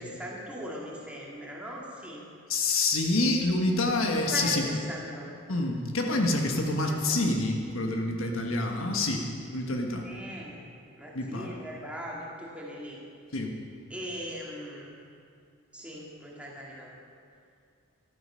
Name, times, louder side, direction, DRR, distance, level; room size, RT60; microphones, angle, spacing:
voice 1, 0.0-2.3 4.3-5.4 6.9-7.0 10.0-10.6 11.0-13.0 13.9-15.0 15.7-17.0, equal, 5° right, -4 dB, 2.3 m, -39 dB
voice 2, 2.5-4.7 5.5-10.2 11.1-11.5 13.3-13.5, left 2 dB, 70° left, 2 dB, 1.5 m, -27 dB
14.5 x 12.5 x 5.7 m, 2.4 s
head